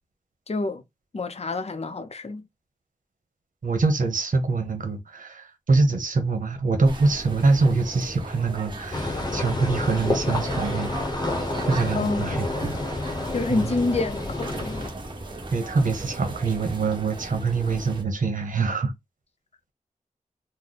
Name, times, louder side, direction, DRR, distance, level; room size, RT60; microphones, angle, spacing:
voice 1, 0.5-0.8 1.1-2.5 11.9-12.3 13.3-14.9, left 3 dB, 50° left, 0.5 m, -28 dB
voice 2, 3.6-10.9 11.6-12.8 13.5-13.7 15.5-18.9, right 3 dB, 70° right, 1.0 m, -24 dB
sound 1, 6.8-18.0, right 2 dB, 35° right, 1.3 m, -37 dB
sound 2, 8.9-14.9, left 2 dB, 30° left, 0.9 m, -29 dB
3.2 x 2.1 x 4.0 m
wide cardioid pair, 100°, 14 cm